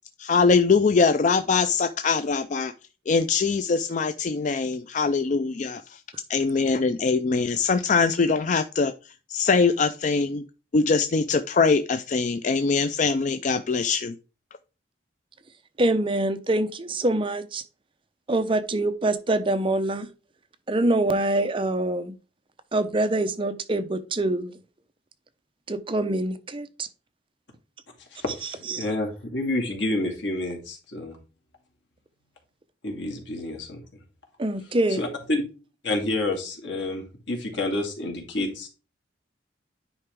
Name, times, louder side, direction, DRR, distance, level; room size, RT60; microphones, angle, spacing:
voice 1, 0.2-2.7 3.1-6.0 6.3-8.9 9.3-10.4 10.7-14.2, left 4 dB, 45° left, 0.4 m, -22 dB
voice 2, 15.8-17.6 18.3-20.1 20.7-22.2 22.7-24.5 25.7-26.9 28.4-28.9 34.4-35.0, right 2 dB, 30° right, 0.7 m, -25 dB
voice 3, 28.1-31.2 32.8-33.8 35.0-35.4 35.8-38.7, left 2 dB, 80° left, 2.4 m, -29 dB
9.8 x 4.8 x 3.5 m
head